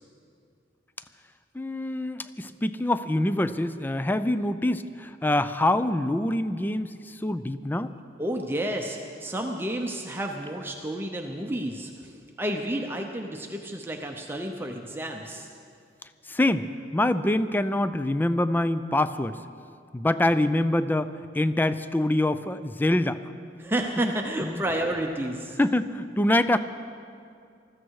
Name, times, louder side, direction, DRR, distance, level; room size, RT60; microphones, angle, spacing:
voice 1, 1.5-7.9 16.3-16.7 16.9-19.4 19.9-21.1 21.3-23.2 24.4-24.6 25.6-26.6, left 1 dB, 10° left, 13 dB, 0.4 m, -25 dB
voice 2, 8.2-15.5 23.6-25.6, right 1 dB, 10° right, 2 dB, 0.7 m, -31 dB
20.0 x 14.0 x 4.7 m, 2.4 s
head